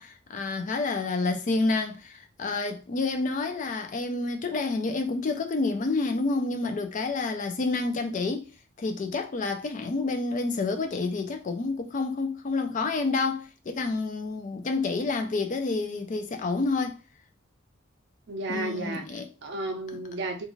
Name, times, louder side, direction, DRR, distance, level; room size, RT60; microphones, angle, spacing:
voice 1, 0.0-8.5 8.8-17.0 18.5-19.3, left 3 dB, 40° left, 0.3 m, -29 dB
voice 2, 18.3-20.5, right 2 dB, 55° right, 0.5 m, -33 dB
2.4 x 2.4 x 3.0 m
head